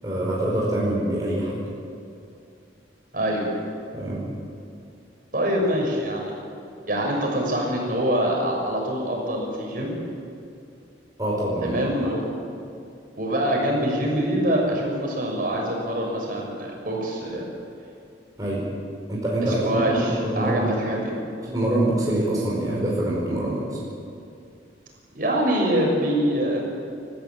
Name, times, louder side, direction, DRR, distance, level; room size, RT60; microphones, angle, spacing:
voice 1, 0.0-1.5 3.9-4.2 11.2-11.9 18.4-18.6 19.1-19.6 19.9-20.7 21.4-23.8, right 1 dB, 20° right, -5 dB, 5.0 m, -25 dB
voice 2, 3.1-3.5 5.3-6.3 6.9-10.0 11.6-12.2 13.1-17.5 19.4-21.1 25.1-26.6, equal, 50° right, -1 dB, 6.7 m, -24 dB
30.0 x 15.0 x 8.9 m, 2.6 s
head